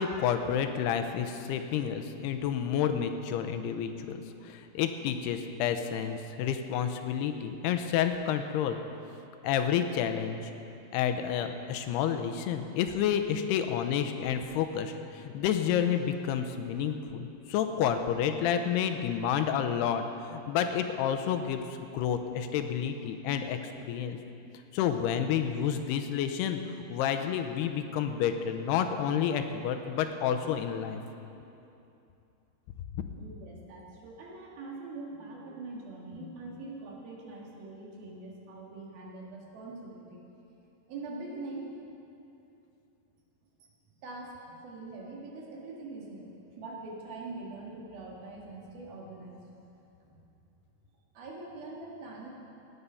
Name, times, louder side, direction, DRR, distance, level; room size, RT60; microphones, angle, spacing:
voice 1, 0.0-8.8 9.4-10.4 10.9-24.2 24.7-26.6 26.9-31.0 32.9-33.0, left 8 dB, 90° left, 7 dB, 2.8 m, -30 dB
voice 2, 33.2-40.2 40.9-41.7 44.0-49.4 50.0-50.2 51.2-52.3, right 3 dB, 70° right, -2 dB, 3.6 m, -43 dB
17.0 x 9.7 x 5.6 m, 2.7 s
omnidirectional pair, 4.6 m